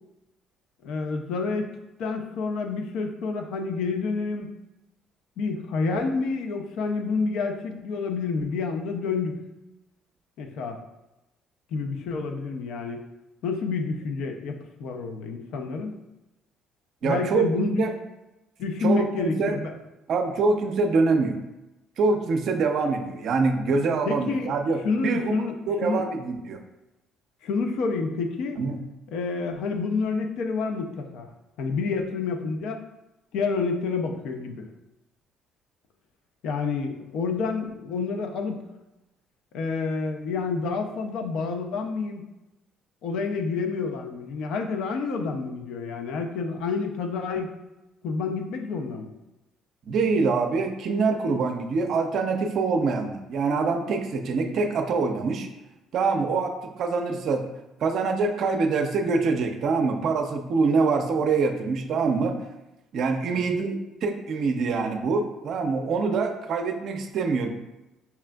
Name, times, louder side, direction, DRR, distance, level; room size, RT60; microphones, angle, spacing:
voice 1, 0.8-4.6 5.4-9.4 10.4-10.8 11.7-13.0 13.4-15.9 17.0-17.9 18.6-19.8 24.0-24.6 24.8-25.5 25.8-26.1 27.4-28.6 29.1-31.3 31.6-32.8 33.3-34.7 36.4-38.6 39.5-42.3 43.0-47.5 48.0-49.1 63.3-63.4, left 4 dB, 70° left, 4 dB, 0.4 m, -29 dB
voice 2, 17.0-17.9 18.8-19.6 20.1-21.4 22.0-24.8 25.0-26.6 28.6-28.8 49.9-55.5 55.9-57.5 57.8-62.4 62.9-67.5, right 4 dB, 60° right, 5 dB, 0.4 m, -25 dB
5.5 x 2.4 x 2.2 m, 0.97 s
hypercardioid pair, 55°, 0 cm